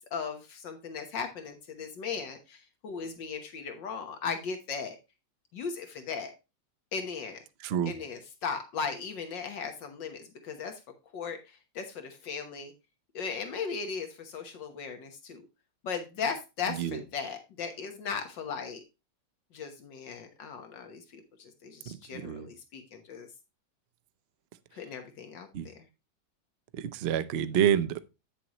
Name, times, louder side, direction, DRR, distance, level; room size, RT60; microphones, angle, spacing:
voice 1, 0.1-5.0 5.5-6.3 6.9-7.4 7.8-10.8 11.1-12.7 13.1-15.4 15.8-18.8 19.5-23.3 24.7-25.9, left 5 dB, 75° left, 1.8 m, -37 dB
voice 2, 7.6-7.9 16.7-17.0 21.9-22.5 25.5-25.7 26.8-28.0, right 9 dB, 85° right, 0.5 m, -28 dB
9.0 x 6.9 x 3.0 m
omnidirectional pair, 2.0 m